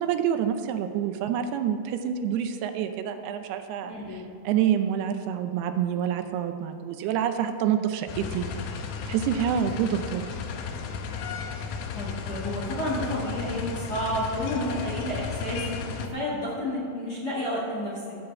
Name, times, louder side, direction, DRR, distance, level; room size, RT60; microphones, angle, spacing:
voice 1, 0.0-3.9 4.4-8.5 9.1-10.2, right 9 dB, 85° right, 8 dB, 2.7 m, -27 dB
voice 2, 3.8-4.3 11.9-18.0, left 1 dB, 35° left, -7 dB, 1.9 m, -31 dB
sound 1, 8.1-16.1, left 5 dB, 80° left, 2.4 m, -34 dB
14.0 x 5.1 x 7.3 m, 2.4 s
omnidirectional pair, 4.6 m